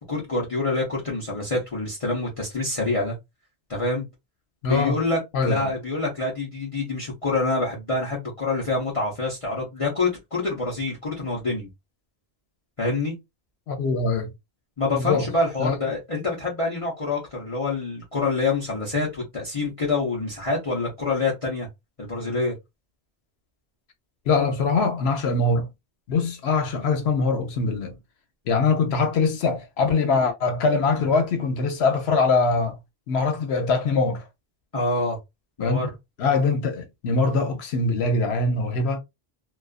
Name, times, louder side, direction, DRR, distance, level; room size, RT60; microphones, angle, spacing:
voice 1, 0.1-3.1 3.7-4.1 4.7-11.7 12.8-13.1 14.8-21.7 22.0-22.5 34.7-35.2 35.6-35.9, left 3 dB, 35° left, 0.8 m, -26 dB
voice 2, 4.6-5.0 5.3-5.7 13.7-14.3 14.9-15.3 15.6-15.7 24.3-25.7 26.1-27.9 28.5-32.8 33.1-34.2 35.6-35.9 36.2-39.0, left 4 dB, 85° left, 0.9 m, -23 dB
2.4 x 2.3 x 2.3 m
omnidirectional pair, 1.0 m